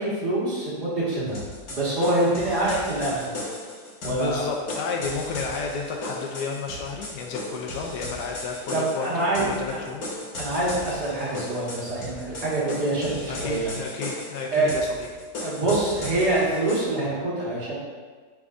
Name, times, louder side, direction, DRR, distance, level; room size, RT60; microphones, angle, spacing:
voice 1, 0.0-1.4 1.7-3.3 4.0-4.4 8.7-9.8 10.4-13.7 14.5-14.7 15.4-17.8, right 2 dB, 70° right, -8 dB, 2.4 m, -25 dB
sound 1, 1.3-16.9, left 1 dB, 60° left, 1.6 m, -36 dB
voice 2, 4.0-10.0 13.3-15.1, left 5 dB, 80° left, 0 dB, 1.2 m, -32 dB
10.5 x 3.6 x 2.5 m, 1.5 s
omnidirectional pair, 1.8 m